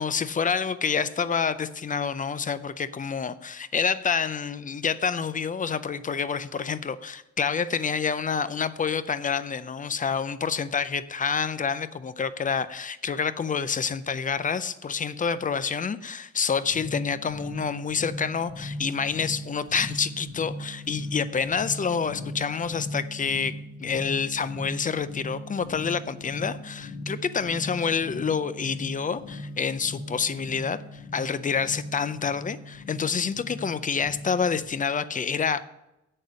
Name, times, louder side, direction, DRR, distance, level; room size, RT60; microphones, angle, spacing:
voice 1, 0.0-35.6, left 6 dB, 30° left, 14 dB, 0.4 m, -28 dB
sound 1, 16.6-34.6, left 1 dB, 60° left, 2.0 m, -39 dB
8.5 x 6.5 x 6.2 m, 0.90 s
wide cardioid pair, 145°, 29 cm